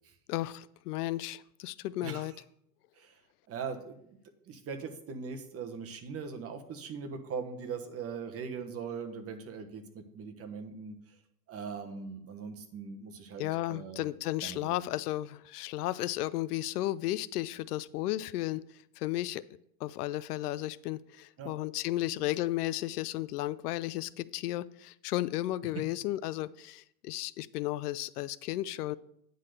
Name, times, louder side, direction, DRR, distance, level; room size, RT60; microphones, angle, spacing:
voice 1, 0.3-2.3 13.4-18.6 19.0-19.4 19.8-29.0, left 15 dB, 80° left, 19 dB, 0.5 m, -34 dB
voice 2, 3.5-4.2 4.5-10.9 11.5-14.1 14.4-14.8 21.4-21.5 25.7-25.8, right 5 dB, 30° right, 6 dB, 1.2 m, -40 dB
9.7 x 4.0 x 6.6 m, 0.72 s
supercardioid pair, 115°, 45 cm